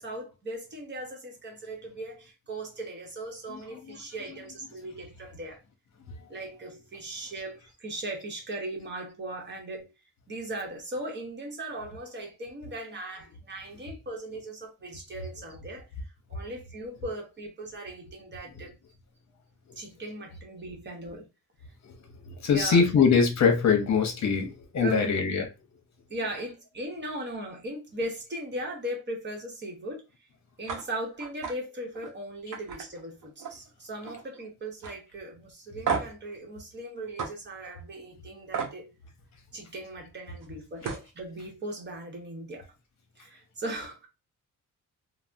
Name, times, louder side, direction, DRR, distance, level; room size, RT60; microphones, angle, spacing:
voice 1, 0.0-5.6 6.3-9.9 10.3-15.9 16.3-18.7 19.8-21.2 22.5-23.0 24.8-25.2 26.1-30.0 30.6-38.9 39.5-42.6 43.2-44.1, right 1 dB, 35° right, 0.9 m, -38 dB
voice 2, 3.5-4.4 21.8-21.9 22.3-25.5 26.2-26.3, left 5 dB, 60° left, 0.8 m, -24 dB
sound 1, 30.7-30.8 31.2-31.5 31.9-32.1 32.5-33.7 34.0-34.4 34.8-34.9 35.9-36.2 37.2-37.3 38.5-38.8 40.4-40.5 40.8-41.1, right 6 dB, 75° right, 0.7 m, -32 dB
3.3 x 2.0 x 2.5 m
wide cardioid pair, 160°, 32 cm